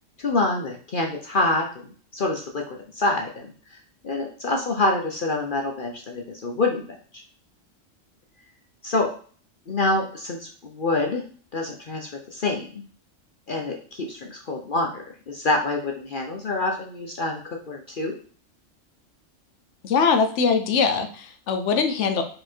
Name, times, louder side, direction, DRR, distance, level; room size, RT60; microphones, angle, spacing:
voice 1, 0.2-3.5 4.0-7.2 8.8-9.1 9.7-11.2 11.5-12.8 13.5-17.4 17.7-18.2, left 2 dB, 45° left, 2 dB, 0.8 m, -26 dB
voice 2, 19.8-22.2, left 5 dB, 65° left, 6 dB, 1.1 m, -22 dB
4.8 x 4.7 x 4.4 m, 0.44 s
omnidirectional pair, 1.3 m